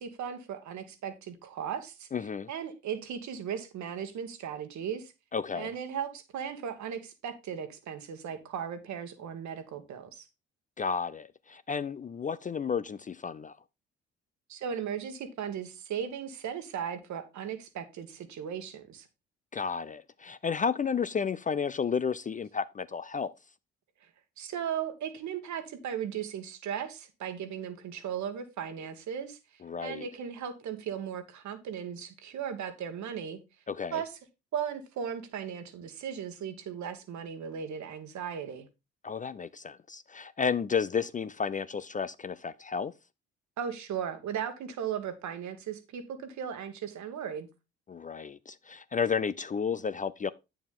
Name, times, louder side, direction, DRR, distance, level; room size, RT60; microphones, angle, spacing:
voice 1, 0.0-2.1 2.5-5.1 5.5-10.3 14.5-19.1 24.4-29.4 29.8-33.4 33.9-34.1 34.5-38.7 43.6-47.5, right 8 dB, 60° right, 1.4 m, -37 dB
voice 2, 2.1-2.5 5.3-5.7 10.8-13.6 19.5-23.3 29.6-30.1 33.7-34.0 39.0-42.9 47.9-50.3, left 6 dB, 25° left, 0.4 m, -32 dB
8.6 x 6.9 x 3.7 m
hypercardioid pair, 50°, 32 cm